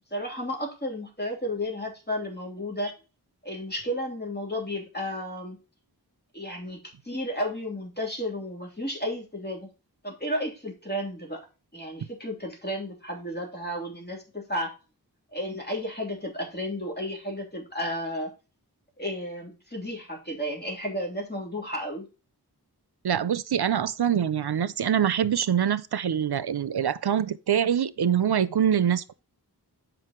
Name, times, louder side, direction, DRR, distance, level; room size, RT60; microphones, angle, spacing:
voice 1, 0.1-2.9 3.4-5.6 6.3-9.7 10.0-11.4 11.7-14.7 15.3-18.3 19.0-22.1, equal, 25° left, 3.3 m, -33 dB
voice 2, 23.0-29.1, right 9 dB, 75° right, 0.6 m, -24 dB
7.8 x 5.2 x 4.4 m
wide cardioid pair, 60°, 39 cm